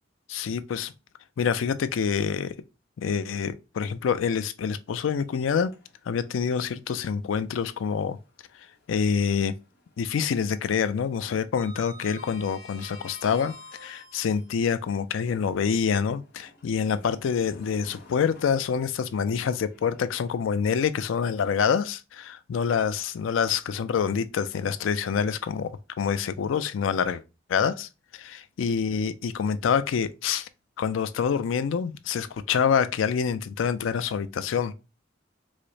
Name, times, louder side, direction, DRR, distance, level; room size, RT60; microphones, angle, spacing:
voice 1, 0.3-0.9 1.4-2.5 3.0-5.7 6.1-8.2 8.9-9.5 10.0-13.5 13.8-25.7 26.0-27.2 27.5-28.3 28.6-30.5 30.8-34.7, left 6 dB, 85° left, 0.4 m, -26 dB
Sliding door, 5.2-6.2 6.6-6.7 8.4-9.5 9.7-10.1 10.4-14.5 15.1-20.3, left 1 dB, 60° left, 0.9 m, -50 dB
4.8 x 2.0 x 2.6 m
head